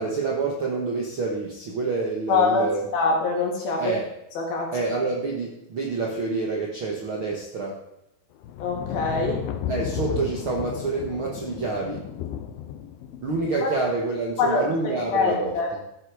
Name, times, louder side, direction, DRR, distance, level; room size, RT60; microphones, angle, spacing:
voice 1, 0.0-2.8 3.8-4.0 4.7-7.8 9.7-12.0 13.2-15.5, right 3 dB, 55° right, -1 dB, 1.5 m, -27 dB
voice 2, 2.3-3.9 4.4-4.7 8.6-9.4 13.6-13.7 14.4-14.7 15.0-15.7, left 4 dB, 70° left, -1 dB, 4.3 m, -24 dB
sound 1, 8.4-13.9 15.1-15.4, left 9 dB, 90° left, 2.7 m, -34 dB
14.5 x 8.3 x 4.9 m, 0.82 s
omnidirectional pair, 4.4 m